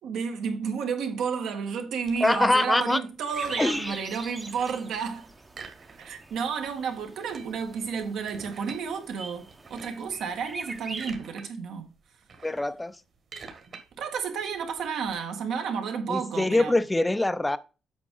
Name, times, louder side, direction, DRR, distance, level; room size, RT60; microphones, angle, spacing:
voice 1, 0.0-5.3 6.0-11.9 14.0-16.7, right 6 dB, 80° right, 1.7 m, -31 dB
sound 1, 2.0-4.0 4.3-5.0 5.5-6.4 6.6-6.7 7.1-8.9 9.5-10.1 10.6-11.5 11.8-15.2, right 5 dB, 50° right, 1.8 m, -47 dB
voice 2, 2.2-3.0 3.6-3.9 12.4-12.9 16.1-17.6, left 2 dB, 10° left, 0.5 m, -24 dB
sound 2, 3.3-11.1, right 2 dB, 20° right, 0.8 m, -43 dB
8.4 x 6.1 x 3.8 m
cardioid pair, 130°, 0 cm